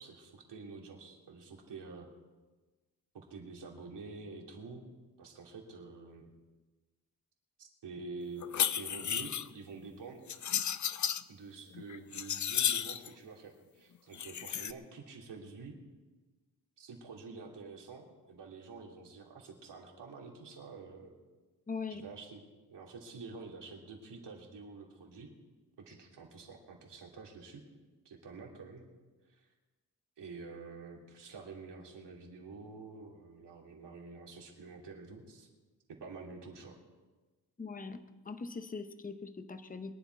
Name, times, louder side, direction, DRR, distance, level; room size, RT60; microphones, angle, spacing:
voice 1, 0.0-2.1 3.1-4.9 5.2-6.3 7.6-8.5 8.7-10.3 11.3-15.8 16.8-21.1 21.9-25.3 25.8-27.6 28.0-28.8 29.3-29.5 30.2-35.5 35.9-36.8, right 4 dB, 75° right, 0 dB, 2.9 m, -48 dB
sound 1, 8.4-9.5 10.3-11.2 11.7-13.1 14.1-14.7, left 9 dB, 45° left, 0.6 m, -33 dB
voice 2, 21.7-22.0 37.6-38.0 38.3-40.0, left 4 dB, 20° left, 10 dB, 0.8 m, -41 dB
22.5 x 10.5 x 4.6 m, 1.3 s
wide cardioid pair, 130°, 41 cm